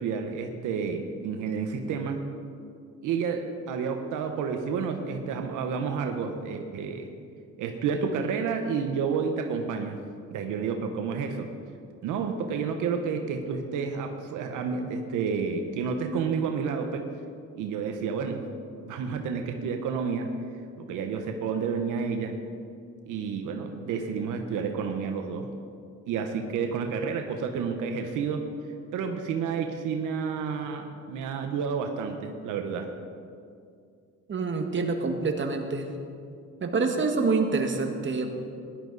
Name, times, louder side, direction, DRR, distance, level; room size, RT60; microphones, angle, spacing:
voice 1, 0.0-2.2 3.0-7.1 7.6-10.0 10.3-11.5 12.0-17.1 17.5-18.5 18.8-20.3 20.8-22.4 23.1-25.5 26.1-28.5 28.9-32.9, right 6 dB, 90° right, 5 dB, 1.1 m, -30 dB
voice 2, 34.3-35.9 36.6-38.4, right 4 dB, 40° right, 4 dB, 1.7 m, -26 dB
16.5 x 11.5 x 4.0 m, 2.3 s
cardioid pair, 90°, 30 cm